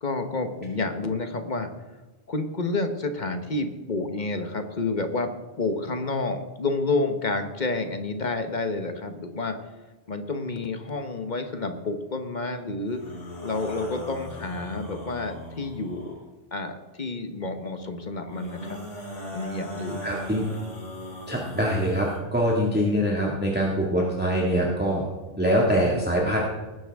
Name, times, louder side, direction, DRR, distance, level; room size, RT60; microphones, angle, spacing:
voice 1, 0.0-1.7 2.3-9.6 10.1-13.0 13.4-16.2 16.5-18.8 19.3-20.0, left 3 dB, 40° left, 7 dB, 1.2 m, -29 dB
sound 1, 12.8-16.2 18.2-22.2, equal, 85° left, 3.7 m, -39 dB
voice 2, 20.0-20.4 21.3-25.0 25.4-26.4, equal, 10° right, -3 dB, 1.8 m, -24 dB
19.0 x 10.0 x 3.5 m, 1.2 s
omnidirectional pair, 1.2 m